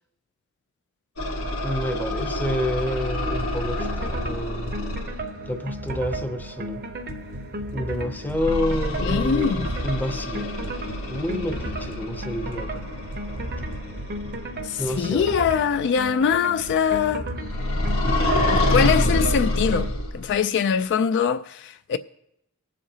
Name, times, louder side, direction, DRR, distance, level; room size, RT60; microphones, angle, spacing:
sound 1, 1.2-5.2 8.3-14.7 17.5-20.3, left 1 dB, 80° left, 1.7 m, -27 dB
voice 1, 1.6-4.8 5.5-6.9 7.7-10.5 11.1-12.8 14.8-15.3, left 1 dB, 10° left, 0.6 m, -29 dB
sound 2, 1.8-18.6, right 2 dB, 85° right, 1.3 m, -42 dB
sound 3, 3.3-19.9, right 1 dB, 50° right, 0.7 m, -35 dB
voice 2, 9.0-9.7 14.6-17.3 18.5-22.0, left 7 dB, 55° left, 0.3 m, -23 dB
20.5 x 7.5 x 2.8 m
head